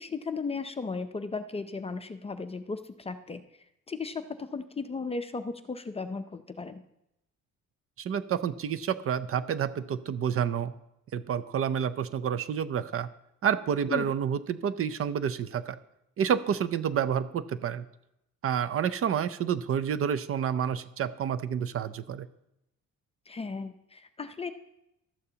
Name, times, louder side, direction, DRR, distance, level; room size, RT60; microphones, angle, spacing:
voice 1, 0.0-3.4 3.9-6.8 13.9-14.1 23.3-24.5, left 4 dB, 20° left, 9 dB, 0.5 m, -36 dB
voice 2, 8.0-10.7 11.1-13.1 13.4-15.8 16.2-17.8 18.4-22.3, right 8 dB, 45° right, 13 dB, 0.6 m, -29 dB
15.0 x 12.5 x 2.8 m, 0.82 s
cardioid pair, 145°, 31 cm